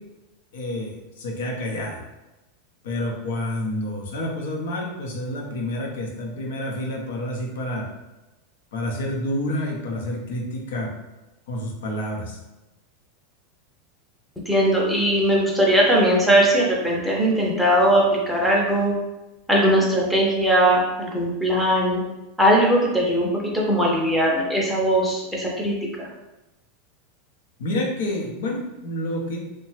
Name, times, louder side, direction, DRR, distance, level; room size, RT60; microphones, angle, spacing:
voice 1, 0.5-2.0 2.8-7.9 8.7-10.9 11.5-12.4 27.6-29.4, left 1 dB, 85° left, -1 dB, 0.7 m, -29 dB
voice 2, 14.5-18.9 19.5-22.0 22.4-26.1, right 1 dB, ahead, -4 dB, 0.5 m, -20 dB
2.9 x 2.2 x 3.1 m, 1.0 s
supercardioid pair, 160°, 0 cm